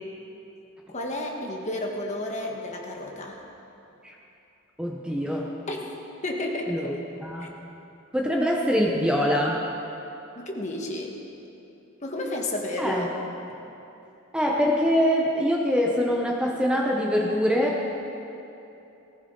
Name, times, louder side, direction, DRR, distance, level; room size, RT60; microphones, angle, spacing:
voice 1, 0.9-3.4 5.7-6.9 7.4-7.5 10.3-11.1 12.0-13.1, left 1 dB, 35° left, 0 dB, 1.5 m, -32 dB
voice 2, 4.8-5.5 6.7-6.9 7.2-7.5 8.1-9.6 12.8-13.0 14.3-17.9, equal, 5° right, -1 dB, 0.9 m, -24 dB
18.5 x 15.0 x 3.9 m, 2.9 s
head